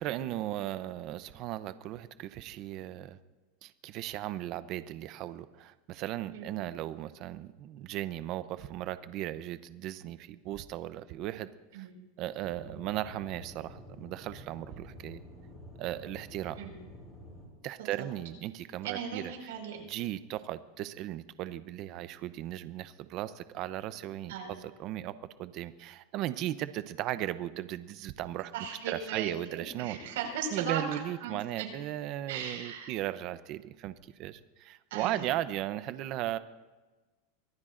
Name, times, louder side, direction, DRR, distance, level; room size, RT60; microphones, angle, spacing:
voice 1, 0.0-3.2 3.6-11.5 11.7-11.9 12.2-15.2 15.8-16.6 17.6-19.3 19.8-25.1 25.4-28.5 28.9-30.0 30.5-36.4, right 13 dB, 45° right, 13 dB, 0.7 m, -37 dB
Aircraft / Engine, 12.4-17.4, left 1 dB, 5° left, 6.4 m, -49 dB
voice 2, 18.8-19.8 24.3-24.5 28.5-31.7 32.3-32.9 34.9-35.3, right 7 dB, 80° right, 2 dB, 5.1 m, -37 dB
24.5 x 19.0 x 2.6 m, 1.2 s
supercardioid pair, 150°, 0 cm